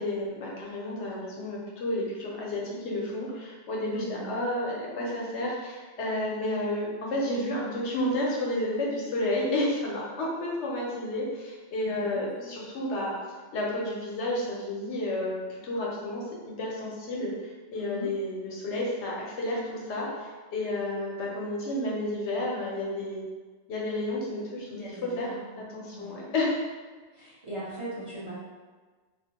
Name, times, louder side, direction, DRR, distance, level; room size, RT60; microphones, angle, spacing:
voice 1, 0.0-13.1 13.5-16.2 16.6-17.3 17.7-23.2 23.7-25.3 25.6-26.5, left 1 dB, 80° left, -4 dB, 1.0 m, -31 dB
voice 2, 3.9-4.3 11.8-12.6 17.7-18.1 24.7-26.3 27.1-28.3, right 1 dB, 40° right, -10 dB, 0.5 m, -40 dB
2.4 x 2.1 x 2.8 m, 1.4 s
omnidirectional pair, 1.1 m